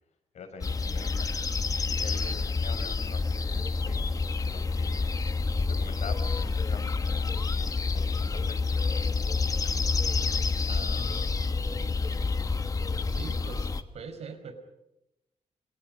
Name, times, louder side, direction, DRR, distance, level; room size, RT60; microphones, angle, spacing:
voice 1, 0.3-1.3 1.8-5.1 5.7-10.0 12.2-12.6, left 5 dB, 75° left, 6 dB, 6.7 m, -46 dB
sound 1, 0.6-13.8, left 4 dB, 30° left, 1.5 m, -28 dB
voice 2, 10.7-11.9 13.0-14.5, right 5 dB, 65° right, 9 dB, 4.9 m, -43 dB
29.5 x 27.5 x 5.4 m, 0.89 s
wide cardioid pair, 140°, 12 cm